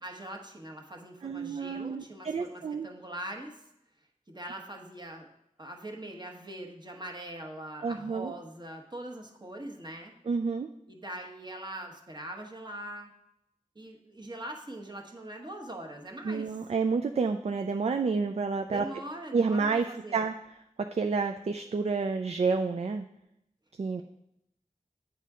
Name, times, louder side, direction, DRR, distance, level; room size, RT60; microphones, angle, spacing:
voice 1, 0.0-3.6 4.3-5.3 5.6-10.1 10.9-13.1 13.7-16.6 18.7-20.2, right 1 dB, 30° right, 2 dB, 1.2 m, -42 dB
voice 2, 1.2-2.9 7.8-8.3 10.3-10.7 16.2-18.9 19.3-20.3 20.8-23.0 23.8-24.0, right 4 dB, 50° right, 7 dB, 0.4 m, -29 dB
9.1 x 4.2 x 3.6 m, 0.81 s
cardioid pair, 45°, 14 cm